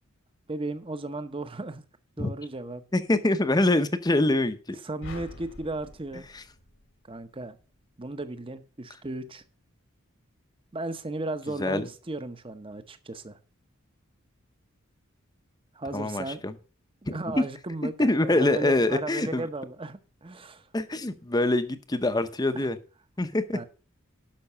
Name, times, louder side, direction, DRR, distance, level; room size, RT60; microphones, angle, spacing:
voice 1, 0.5-1.8 2.2-2.8 4.8-6.3 7.1-7.6 8.0-9.4 10.7-13.4 15.7-16.4 17.0-20.7 22.5-22.7 23.5-23.7, right 2 dB, 25° right, 11 dB, 0.8 m, -35 dB
voice 2, 2.9-4.8 6.3-6.4 11.6-11.9 15.9-16.5 17.1-17.5 17.8-19.5 20.7-22.8 23.2-23.7, left 2 dB, 20° left, 11 dB, 0.7 m, -25 dB
sound 1, 5.0-7.4, left 2 dB, 60° left, 1.4 m, -46 dB
12.0 x 5.9 x 5.5 m, 0.38 s
head